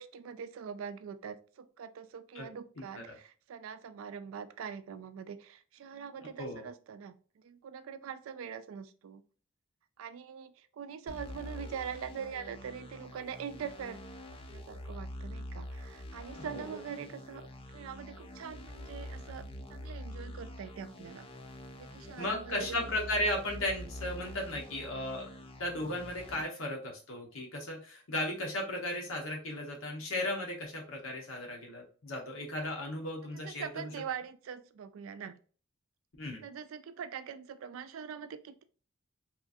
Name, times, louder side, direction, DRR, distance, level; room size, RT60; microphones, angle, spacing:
voice 1, 0.0-9.2 10.0-14.0 14.5-21.3 21.7-22.9 33.4-35.4 36.4-38.6, right 7 dB, 75° right, 12 dB, 0.3 m, -43 dB
voice 2, 2.8-3.1 6.4-6.6 16.4-16.8 22.2-25.3 25.6-33.7 36.2-36.4, left 1 dB, 75° left, 0 dB, 1.0 m, -36 dB
sound 1, 11.1-26.4, left 1 dB, 25° left, 0.4 m, -45 dB
3.0 x 2.4 x 2.5 m, 0.40 s
head